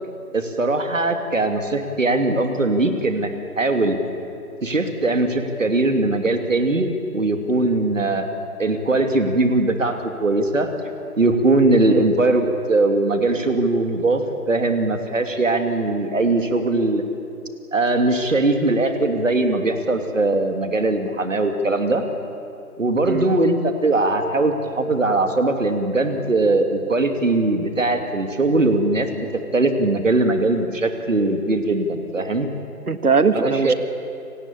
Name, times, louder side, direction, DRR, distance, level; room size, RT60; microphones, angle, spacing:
voice 1, 0.3-3.3 3.6-4.0 4.6-8.3 8.6-10.7 11.2-17.0 17.7-22.0 22.8-32.5 33.3-33.7, right 2 dB, 55° right, 6 dB, 2.8 m, -20 dB
voice 2, 32.9-33.7, right 4 dB, 70° right, 12 dB, 1.6 m, -20 dB
28.5 x 19.5 x 8.6 m, 2.7 s
figure-of-eight pair, 170°, 46 cm